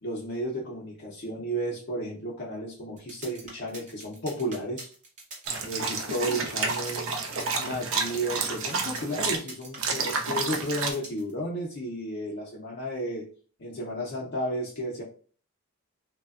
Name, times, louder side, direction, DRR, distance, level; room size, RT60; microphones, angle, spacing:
voice 1, 0.0-4.9 5.6-7.1 7.5-13.2 13.6-15.0, equal, 50° left, -2 dB, 0.5 m, -33 dB
sound 1, 3.0-11.3, right 2 dB, 35° right, 0.7 m, -44 dB
sound 2, 5.5-9.4 9.8-10.9, right 4 dB, 80° right, 0.4 m, -30 dB
3.2 x 2.0 x 2.3 m, 0.41 s
head